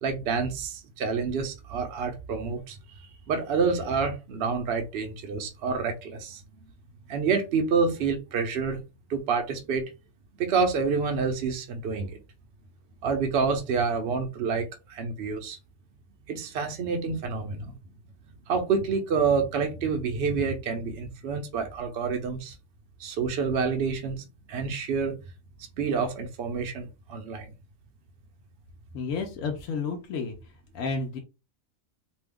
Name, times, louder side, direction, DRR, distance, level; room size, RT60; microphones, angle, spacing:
voice 1, 0.0-2.8 3.3-6.4 7.1-8.8 9.1-9.8 10.4-12.1 13.0-15.6 16.3-17.7 18.5-22.6 23.0-25.2 25.8-27.5, right 5 dB, 65° right, 0.7 m, -28 dB
voice 2, 28.9-30.4 30.7-31.2, left 4 dB, 70° left, 1.0 m, -31 dB
2.7 x 2.2 x 3.4 m
omnidirectional pair, 1.4 m